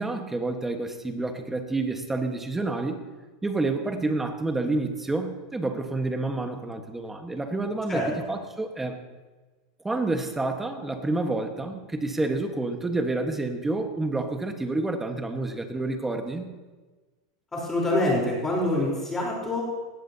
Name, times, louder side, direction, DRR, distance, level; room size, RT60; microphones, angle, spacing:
voice 1, 0.0-3.0 3.4-9.0 9.8-16.5, right 2 dB, 10° right, 5 dB, 1.4 m, -29 dB
voice 2, 17.5-19.6, left 1 dB, 15° left, -3 dB, 3.9 m, -25 dB
18.5 x 15.0 x 2.8 m, 1.3 s
supercardioid pair, 130°, 3 cm